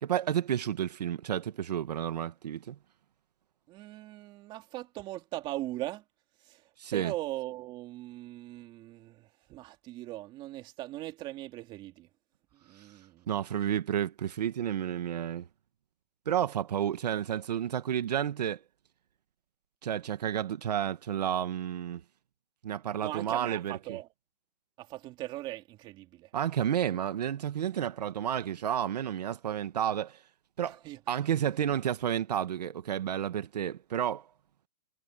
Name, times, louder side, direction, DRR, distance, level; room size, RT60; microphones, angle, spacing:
voice 1, 0.0-2.8 6.8-7.1 12.8-12.9 13.3-15.5 16.3-18.6 19.8-22.0 22.6-24.0 26.3-30.2 30.6-34.3, right 10 dB, 70° right, 1.8 m, -31 dB
voice 2, 3.7-6.0 6.4-12.1 12.5-13.3 23.0-24.1 24.8-26.3 30.7-31.0, right 16 dB, 25° right, 2.9 m, -40 dB
hypercardioid pair, 160°, 21 cm